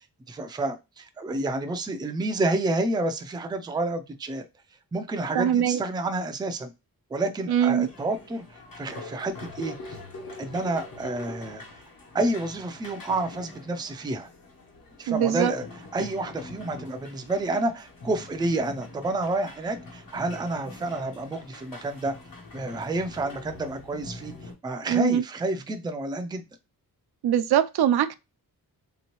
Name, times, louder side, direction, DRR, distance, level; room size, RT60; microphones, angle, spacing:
voice 1, 0.3-4.5 4.9-6.7 7.1-8.4 8.8-10.0 10.4-11.6 12.1-14.3 15.0-15.7 15.9-22.1 22.5-24.3 24.6-26.4, right 2 dB, 10° right, 0.3 m, -29 dB
voice 2, 5.3-5.8 7.5-7.9 15.1-15.5 24.9-25.2 27.2-28.1, right 10 dB, 90° right, 0.5 m, -22 dB
sound 1, 7.8-24.5, left 2 dB, 65° left, 1.2 m, -44 dB
3.4 x 2.9 x 2.9 m
wide cardioid pair, 180°, 37 cm